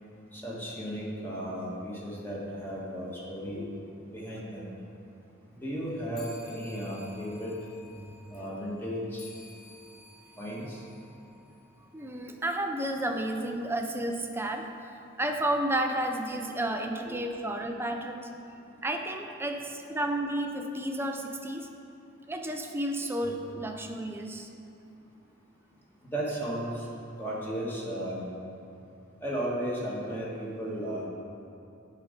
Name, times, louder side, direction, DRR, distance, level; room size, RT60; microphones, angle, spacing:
voice 1, 0.3-3.6 4.1-4.7 5.5-7.5 8.3-9.3 10.4-10.9 26.0-26.9 27.2-28.4 29.2-31.1, equal, 10° left, -6 dB, 1.7 m, -35 dB
sound 1, 6.1-12.0, left 3 dB, 50° left, 1.9 m, -54 dB
voice 2, 11.9-14.7 15.2-18.3 18.8-21.7 22.3-24.5, right 1 dB, 10° right, 3 dB, 0.6 m, -32 dB
11.5 x 4.3 x 5.2 m, 2.7 s
head